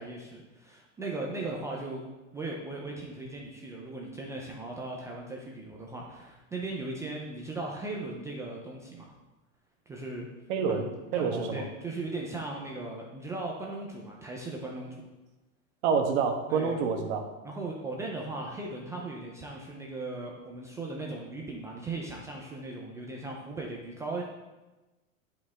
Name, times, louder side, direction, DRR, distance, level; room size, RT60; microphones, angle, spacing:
voice 1, 0.0-2.0 2.3-9.1 9.9-10.3 10.7-10.9 11.2-15.1 16.5-16.8 17.4-24.2, right 2 dB, 10° right, -2 dB, 0.3 m, -38 dB
voice 2, 10.5-11.6 15.8-17.3, right 5 dB, 60° right, 4 dB, 1.4 m, -28 dB
10.5 x 5.0 x 3.5 m, 1.1 s
supercardioid pair, 145°, 40 cm